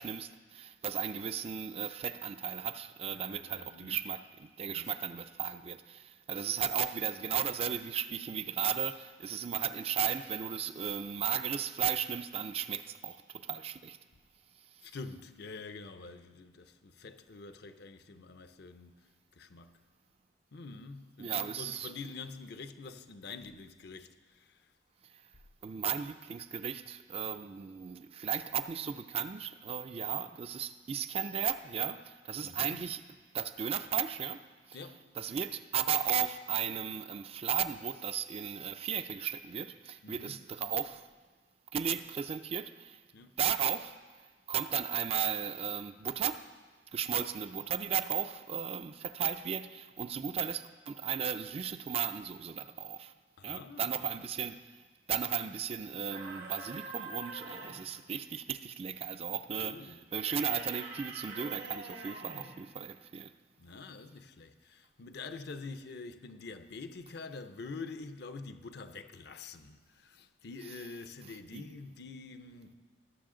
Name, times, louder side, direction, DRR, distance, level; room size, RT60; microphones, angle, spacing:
voice 1, 0.0-14.0 14.7-14.9 21.2-21.9 25.1-25.2 25.6-33.0 33.3-34.8 35.2-41.1 41.7-43.0 43.4-44.2 44.5-46.5 46.9-53.1 53.4-54.8 55.1-63.3 71.5-71.7, right 8 dB, 35° right, 0.3 m, -35 dB
voice 2, 3.1-4.1 4.6-5.0 14.8-19.8 20.5-24.7 32.4-32.9 34.7-35.0 40.0-40.5 43.1-43.3 53.4-54.3 59.5-60.1 63.6-72.7, left 4 dB, 65° left, 0.6 m, -46 dB
sound 1, 56.1-57.9 60.1-62.6, right 3 dB, 85° right, 2.0 m, -45 dB
19.5 x 6.9 x 3.8 m
head